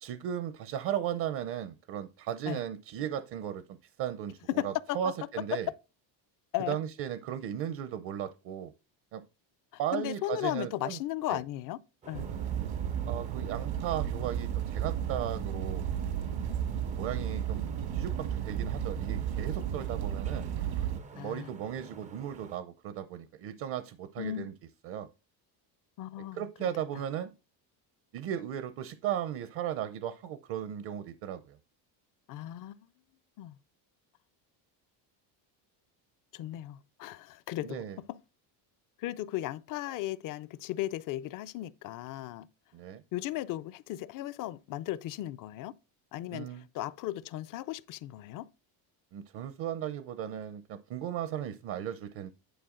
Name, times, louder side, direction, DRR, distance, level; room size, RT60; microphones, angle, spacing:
voice 1, 0.0-5.7 6.7-8.7 9.1-9.2 9.8-11.0 11.3-11.4 13.1-15.8 16.9-17.6 17.9-20.5 21.1-24.5 24.8-25.1 26.3-27.3 28.1-31.6 37.6-38.0 42.7-43.0 46.3-46.7 49.1-52.3, right 10 dB, 50° right, 0.7 m, -36 dB
voice 2, 4.6-5.0 6.5-6.8 9.9-11.8 12.0-12.3 21.1-21.5 24.2-24.5 26.0-26.7 32.3-32.9 33.4-33.6 36.3-37.8 38.1-38.2 39.0-42.5 43.1-45.7 46.1-48.5, left 14 dB, 45° left, 0.4 m, -36 dB
sound 1, 12.0-22.6, right 5 dB, 15° right, 0.4 m, -51 dB
sound 2, 12.1-21.0, right 9 dB, 70° right, 1.4 m, -33 dB
10.5 x 4.6 x 3.7 m
cardioid pair, 155°, 47 cm